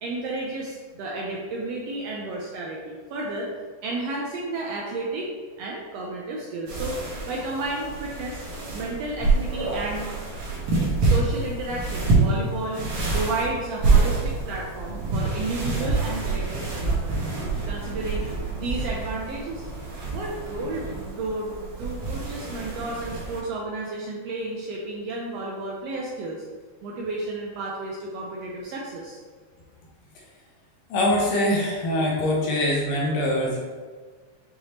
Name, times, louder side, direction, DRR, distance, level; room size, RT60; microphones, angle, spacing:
voice 1, 0.0-3.5 3.8-5.3 5.6-8.4 8.7-10.1 11.0-12.8 13.1-17.2 17.7-19.7 20.1-26.4 26.8-29.2, right 2 dB, 80° right, -2 dB, 1.4 m, -32 dB
sound 1, 6.7-23.4, right 3 dB, 65° right, 2.2 m, -27 dB
voice 2, 30.9-33.6, left 1 dB, 75° left, -2 dB, 1.7 m, -23 dB
6.6 x 2.8 x 2.8 m, 1.5 s
omnidirectional pair, 3.3 m